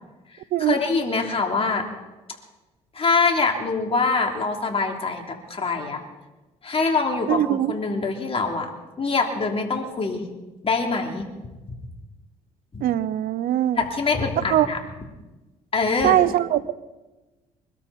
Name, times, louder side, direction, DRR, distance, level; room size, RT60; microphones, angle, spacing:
voice 1, 0.6-1.8 2.9-6.0 6.6-8.7 9.0-10.2 10.6-11.3 12.7-12.8 13.8-14.8 15.7-16.2, left 4 dB, 35° left, 2 dB, 3.3 m, -24 dB
voice 2, 7.3-7.8 12.8-13.8 14.5-14.7 16.0-16.7, right 13 dB, 65° right, 16 dB, 0.8 m, -21 dB
24.5 x 13.0 x 4.3 m, 1.1 s
supercardioid pair, 70°, 16 cm